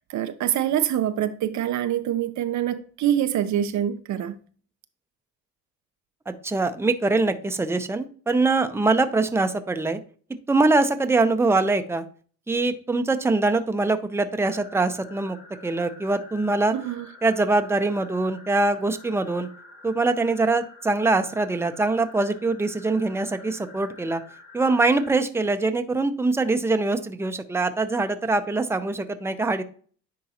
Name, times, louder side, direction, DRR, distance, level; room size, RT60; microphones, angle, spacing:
voice 1, 0.0-4.4 16.7-17.1, right 11 dB, 70° right, 0.6 m, -25 dB
voice 2, 6.3-10.0 10.5-12.0 12.5-15.4 15.6-16.7 17.2-19.5 19.8-24.2 24.5-29.6, right 3 dB, 10° right, 0.6 m, -23 dB
sound 1, 14.4-25.1, left 3 dB, 70° left, 1.8 m, -48 dB
10.0 x 3.8 x 2.8 m
cardioid pair, 90°, 30 cm